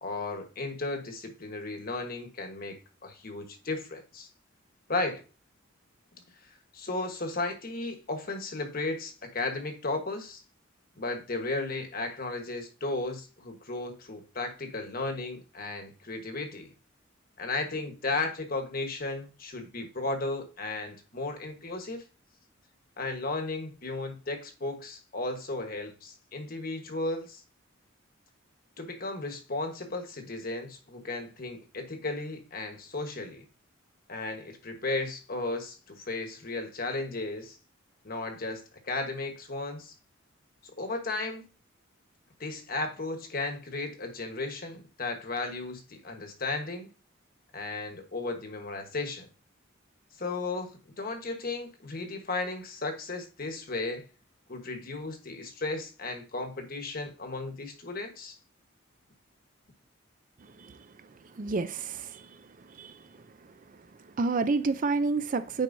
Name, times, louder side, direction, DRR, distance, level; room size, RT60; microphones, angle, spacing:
voice 1, 0.0-4.3 4.9-5.2 6.7-10.4 11.0-16.7 17.4-22.0 23.0-27.4 28.8-33.4 34.1-37.6 38.0-39.9 40.8-41.5 42.4-46.9 47.5-49.3 50.2-50.7 51.0-54.0 54.5-58.4, left 2 dB, 45° left, 1.2 m, -35 dB
voice 2, 61.4-62.4 62.7-63.0 64.2-65.6, right 3 dB, 40° right, 0.4 m, -29 dB
9.3 x 4.5 x 2.6 m
head